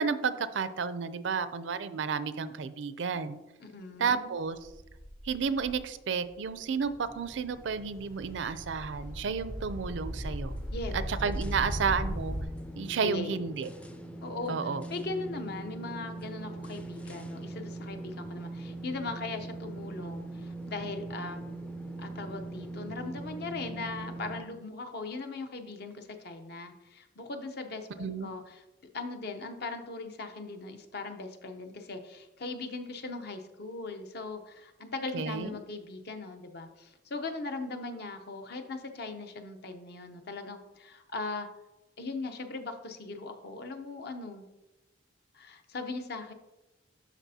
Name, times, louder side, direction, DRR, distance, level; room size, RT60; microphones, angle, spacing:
voice 1, 0.0-3.4 4.0-4.6 5.2-10.6 10.9-12.4 12.8-13.7 14.5-14.9 28.0-28.3 35.1-35.6, right 5 dB, 70° right, 13 dB, 0.4 m, -31 dB
voice 2, 3.6-4.3 10.7-10.9 13.0-13.4 14.2-14.6 14.9-21.4 22.0-28.6 28.9-41.5 42.0-44.4 45.3-46.3, left 3 dB, 60° left, 6 dB, 0.7 m, -39 dB
sound 1, 4.6-5.8 6.4-6.6 6.8-12.4, equal, 80° left, 1.4 m, -37 dB
sound 2, 7.1-24.4, right 2 dB, 5° left, 0.4 m, -42 dB
12.0 x 4.2 x 2.8 m, 1.0 s
head